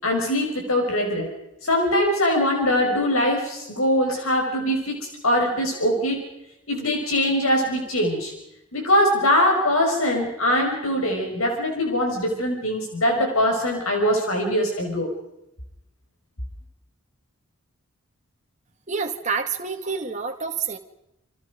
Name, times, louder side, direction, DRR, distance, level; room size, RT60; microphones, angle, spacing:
voice 1, 0.0-1.3 1.6-6.2 6.7-8.3 8.7-15.1, left 1 dB, 70° left, 2 dB, 6.0 m, -22 dB
voice 2, 18.9-20.8, right 5 dB, 30° right, 3 dB, 2.1 m, -28 dB
29.5 x 25.0 x 5.3 m, 0.89 s
head